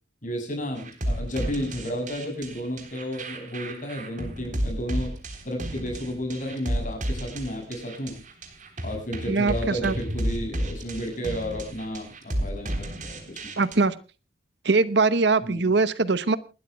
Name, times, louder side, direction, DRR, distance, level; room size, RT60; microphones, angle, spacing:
voice 1, 0.2-5.2 5.4-8.2 8.8-13.5 15.4-15.7, equal, 45° left, 3 dB, 7.2 m, -32 dB
sound 1, 0.8-13.8, right 1 dB, 45° right, 3.6 m, -32 dB
voice 2, 9.3-9.9 13.6-13.9 14.6-16.4, right 3 dB, 65° right, 16 dB, 0.9 m, -22 dB
29.0 x 12.5 x 2.3 m, 0.32 s
head